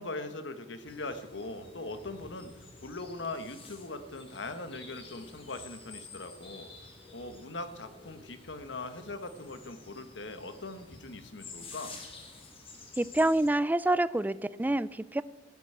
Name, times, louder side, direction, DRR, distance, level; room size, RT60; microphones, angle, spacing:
voice 1, 0.0-12.0, left 2 dB, 80° left, 10 dB, 1.4 m, -41 dB
sound 1, 0.8-13.5, left 3 dB, 30° left, 2.3 m, -50 dB
voice 2, 13.0-15.2, right 1 dB, 10° right, 17 dB, 0.4 m, -27 dB
16.0 x 8.4 x 8.7 m, 1.2 s
head